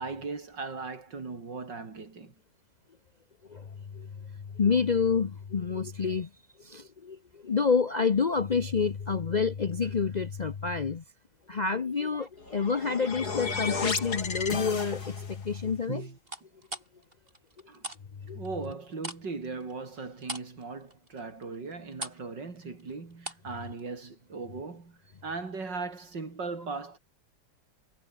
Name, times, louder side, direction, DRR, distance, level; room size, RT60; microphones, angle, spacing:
voice 1, 0.0-2.3 15.9-16.2 17.7-17.8 18.3-27.0, right 4 dB, 70° right, 4.4 m, -38 dB
voice 2, 4.6-6.3 6.6-11.0 11.5-16.1 18.3-18.4, left 5 dB, 85° left, 0.3 m, -28 dB
sound 1, 11.9-13.6 14.0-14.5 16.3-18.0 18.3-23.5 23.8-23.9, right 1 dB, 30° right, 6.9 m, -43 dB
sound 2, 12.4-15.4, left 4 dB, 55° left, 3.4 m, -33 dB
omnidirectional pair, 2.0 m